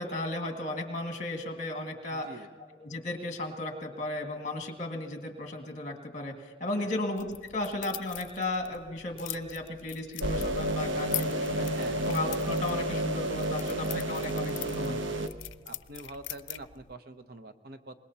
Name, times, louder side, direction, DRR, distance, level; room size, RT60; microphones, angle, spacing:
voice 1, 0.0-2.5 2.7-11.7 12.0-15.0, left 2 dB, 40° left, 3 dB, 1.9 m, -35 dB
voice 2, 2.1-2.5 6.8-7.0 11.7-12.0 15.7-17.9, right 2 dB, 55° right, 8 dB, 0.8 m, -45 dB
sound 1, 7.2-16.9, left 10 dB, 90° left, 0.5 m, -42 dB
sound 2, 10.2-15.3, right 1 dB, 85° right, 0.9 m, -31 dB
24.5 x 20.5 x 2.9 m, 1.5 s
head